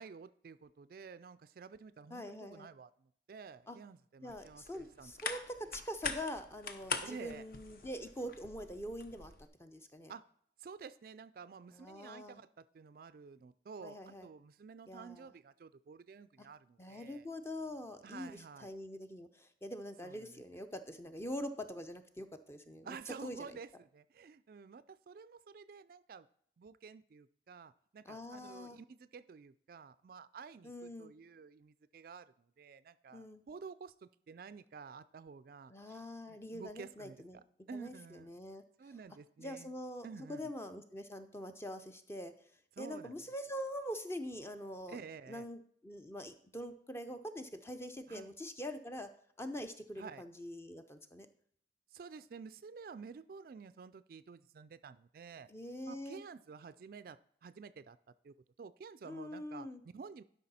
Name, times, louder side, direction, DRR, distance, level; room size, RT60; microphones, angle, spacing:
voice 1, 0.0-5.1 7.0-7.5 10.1-10.3 10.6-17.3 18.0-18.7 20.0-20.4 22.8-26.3 26.6-36.0 36.3-38.3 38.8-39.7 40.0-40.5 42.8-43.2 44.9-45.5 48.1-48.3 50.0-50.2 51.9-55.5 55.9-58.0 58.2-60.2, right 5 dB, 55° right, 15 dB, 0.3 m, -51 dB
voice 2, 2.1-2.7 3.7-3.8 4.2-9.3 9.6-10.1 11.7-12.4 13.8-14.3 14.9-15.3 16.4-16.5 16.8-23.6 28.1-28.8 30.6-31.1 33.1-33.4 35.7-37.4 37.7-38.6 39.4-42.3 42.8-45.0 45.3-49.1 49.4-51.3 55.5-56.2 59.0-59.8, equal, 15° left, 8 dB, 0.6 m, -44 dB
sound 1, 4.3-9.5, left 4 dB, 55° left, 0.8 m, -43 dB
12.0 x 5.4 x 4.2 m, 0.63 s
head